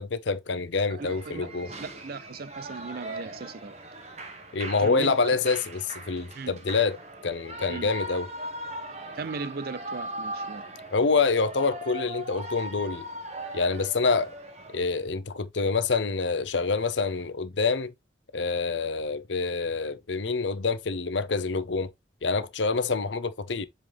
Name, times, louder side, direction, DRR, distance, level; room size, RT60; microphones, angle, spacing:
voice 1, 0.0-1.7 4.5-5.8 6.1-7.0 7.2-8.3 10.9-13.1 13.5-14.3 14.7-17.9 18.3-21.9 22.2-23.6, left 4 dB, 80° left, 0.8 m, -26 dB
voice 2, 0.9-3.8 4.8-5.4 6.3-6.6 7.7-7.9 9.1-10.6, right 4 dB, 55° right, 0.5 m, -38 dB
Shout / Cheering, 1.0-14.8, right 1 dB, 35° right, 1.4 m, -39 dB
7.8 x 3.9 x 3.5 m
head